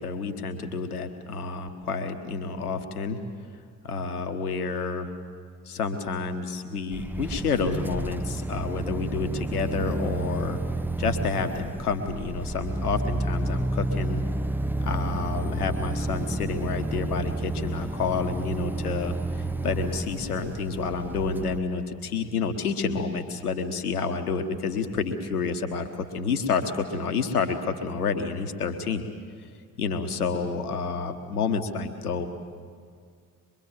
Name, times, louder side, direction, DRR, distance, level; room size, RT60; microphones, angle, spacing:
voice 1, 0.0-3.2 3.8-5.1 5.7-10.6 11.0-14.2 14.8-19.1 19.6-29.1 29.8-32.3, left 5 dB, 85° left, 7 dB, 1.3 m, -29 dB
sound 1, 6.9-21.6, right 2 dB, 5° right, 0.7 m, -30 dB
24.0 x 22.5 x 7.4 m, 2.1 s
figure-of-eight pair, 45°, 44 cm